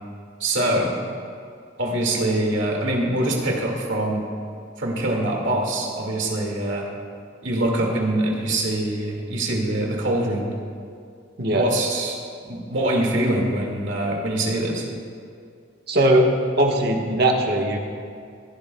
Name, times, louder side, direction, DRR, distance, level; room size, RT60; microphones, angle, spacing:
voice 1, 0.4-0.9 1.8-4.2 4.8-6.9 7.4-10.5 11.5-12.2 12.4-14.9, right 1 dB, 75° right, -1 dB, 2.1 m, -24 dB
voice 2, 15.9-16.3 16.6-17.8, right 1 dB, 55° right, 1 dB, 1.3 m, -19 dB
19.0 x 11.5 x 2.3 m, 2.3 s
head